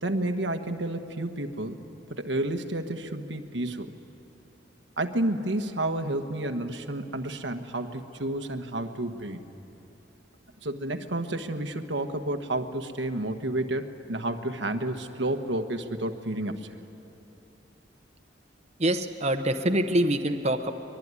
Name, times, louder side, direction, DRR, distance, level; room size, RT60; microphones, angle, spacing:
voice 1, 0.0-1.8 2.1-3.9 5.0-9.4 10.6-16.8, right 1 dB, 90° right, 7 dB, 1.4 m, -30 dB
voice 2, 18.8-20.7, right 1 dB, 35° right, 6 dB, 1.0 m, -25 dB
23.5 x 22.0 x 9.8 m, 2.9 s
head